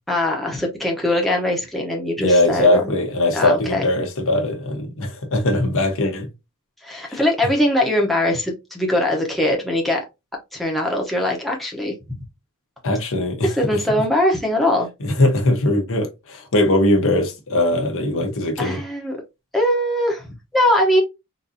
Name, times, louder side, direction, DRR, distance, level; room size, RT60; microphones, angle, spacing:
voice 1, 0.1-2.8 3.3-3.8 6.8-10.0 10.5-11.9 13.4-14.9 18.6-19.2 19.5-21.0, left 1 dB, ahead, 0.8 m, -21 dB
voice 2, 2.2-6.3 7.1-7.2 12.8-13.5 15.0-18.8, left 1 dB, 60° left, 0.9 m, -20 dB
3.9 x 2.6 x 2.6 m
head